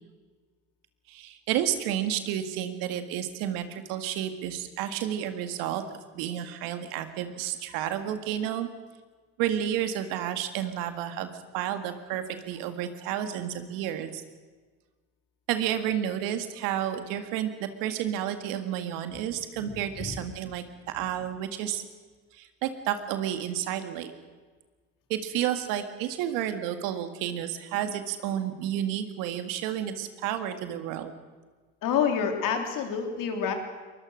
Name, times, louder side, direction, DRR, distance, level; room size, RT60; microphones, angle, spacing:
voice 1, 1.1-5.8 6.1-8.7 9.4-14.2 15.5-21.8 22.3-24.1 25.1-31.2, right 10 dB, 85° right, 8 dB, 1.9 m, -31 dB
voice 2, 19.6-20.1 31.8-33.5, left 7 dB, 70° left, 4 dB, 3.6 m, -28 dB
23.0 x 21.0 x 6.4 m, 1.4 s
supercardioid pair, 65°, 33 cm